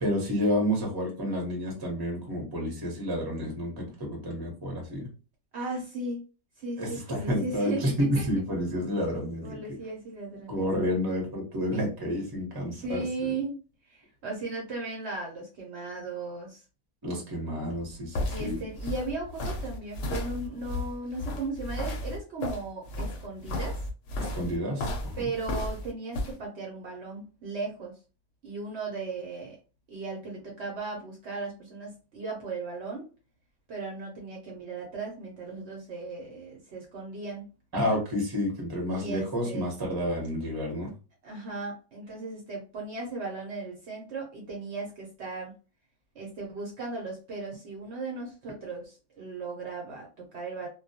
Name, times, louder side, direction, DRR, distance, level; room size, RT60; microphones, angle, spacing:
voice 1, 0.0-5.1 6.8-9.6 10.5-13.3 17.0-18.6 24.2-25.3 37.7-40.9, equal, 20° right, -1 dB, 0.7 m, -30 dB
voice 2, 5.5-6.2 6.6-7.9 8.1-8.2 9.4-10.7 12.8-13.6 13.8-16.6 18.3-23.8 25.2-27.9 28.4-29.6 29.9-33.1 33.7-37.5 38.9-39.7 41.2-45.5 46.1-50.7, right 3 dB, 60° right, -1 dB, 0.9 m, -36 dB
sound 1, 17.7-26.3, left 1 dB, 70° left, 0.8 m, -34 dB
2.2 x 2.2 x 2.7 m, 0.33 s
omnidirectional pair, 1.4 m